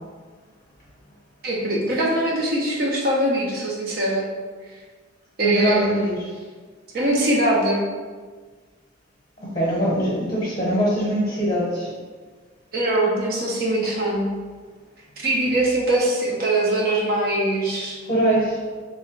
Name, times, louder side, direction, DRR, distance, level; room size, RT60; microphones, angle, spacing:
voice 1, 1.4-4.2 5.4-6.1 6.9-7.9 12.7-14.3 15.2-18.0, right 1 dB, 50° right, -3 dB, 0.5 m, -22 dB
voice 2, 5.4-6.2 9.4-11.9 18.1-18.6, right 1 dB, 25° left, -8 dB, 0.8 m, -22 dB
3.2 x 2.4 x 3.0 m, 1.5 s
head